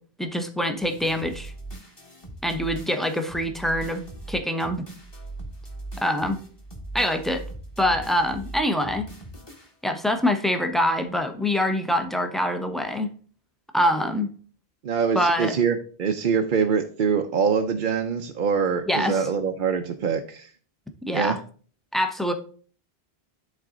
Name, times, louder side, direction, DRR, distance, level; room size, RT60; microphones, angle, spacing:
voice 1, 0.2-1.5 2.4-4.8 6.0-6.4 6.9-7.4 7.8-9.1 9.8-13.1 13.7-14.3 15.1-15.5 18.9-19.2 21.0-21.4 21.9-22.3, left 1 dB, ahead, 6 dB, 0.6 m, -24 dB
sound 1, 0.8-10.0, right 2 dB, 25° left, 1.5 m, -40 dB
voice 2, 14.8-20.5 21.1-21.4, right 6 dB, 60° right, 5 dB, 0.7 m, -24 dB
11.0 x 4.1 x 3.8 m, 0.43 s
omnidirectional pair, 1.1 m